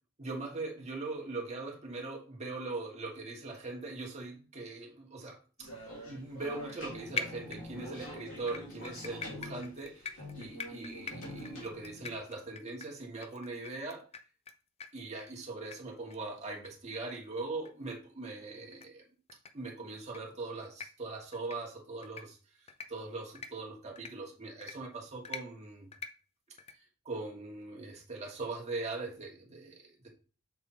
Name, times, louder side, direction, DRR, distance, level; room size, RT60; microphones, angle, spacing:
voice 1, 0.2-14.0 14.9-19.0 19.5-22.4 22.9-25.9 27.0-30.1, right 3 dB, 30° right, -1 dB, 1.4 m, -41 dB
sound 1, 5.6-12.2, equal, 70° left, 2.7 m, -45 dB
sound 2, 7.2-8.0 8.5-14.5 14.8-14.9 15.2-15.3 15.7-15.8 16.1-16.2 16.6-16.7 17.1-17.2 17.6-17.7 18.7-18.9 19.3-19.5 20.0-20.2 20.6-20.9 21.3-21.6 22.0-22.2 22.7-22.9 23.3-23.5 24.0-24.1 24.6-24.7 25.2-25.4 25.9-26.1 26.6-26.7, left 5 dB, 30° left, 0.5 m, -41 dB
6.9 x 3.4 x 4.3 m, 0.36 s
head